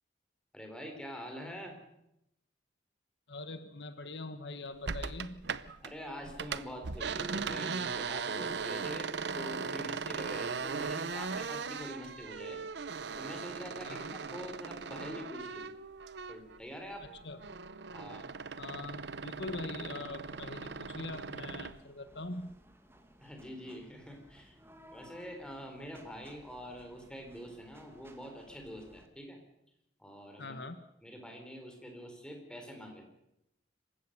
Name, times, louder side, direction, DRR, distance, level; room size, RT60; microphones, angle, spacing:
voice 1, 0.5-1.8 5.8-15.7 16.3-17.2 17.9-18.3 23.2-24.6 24.9-29.4 30.0-30.5 31.0-33.0, equal, 5° left, 3 dB, 4.2 m, -45 dB
voice 2, 3.3-5.5 13.8-14.2 17.2-17.4 18.6-22.6 30.4-30.8, left 2 dB, 70° left, 10 dB, 1.3 m, -43 dB
sound 1, 4.9-5.9 6.2-16.6 16.9-21.8, right 5 dB, 70° right, 0.7 m, -39 dB
sound 2, 18.9-29.1, equal, 15° right, 2.1 m, -59 dB
26.5 x 15.5 x 6.8 m, 0.83 s
head